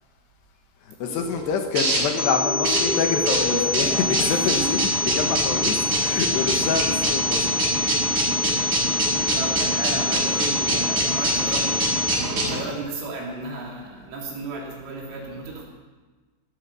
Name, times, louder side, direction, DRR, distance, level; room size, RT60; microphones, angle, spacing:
voice 1, 0.9-7.5, left 6 dB, 70° left, 4 dB, 3.0 m, -27 dB
sound 1, 1.0-12.6, right 1 dB, 50° right, 7.4 m, -25 dB
sound 2, 2.2-12.2, left 2 dB, 35° left, 2.1 m, -26 dB
voice 2, 4.2-4.6 8.5-8.8 9.3-11.9 12.4-15.7, right 3 dB, 80° right, -2 dB, 5.9 m, -34 dB
16.5 x 13.5 x 6.3 m, 1.3 s
omnidirectional pair, 5.7 m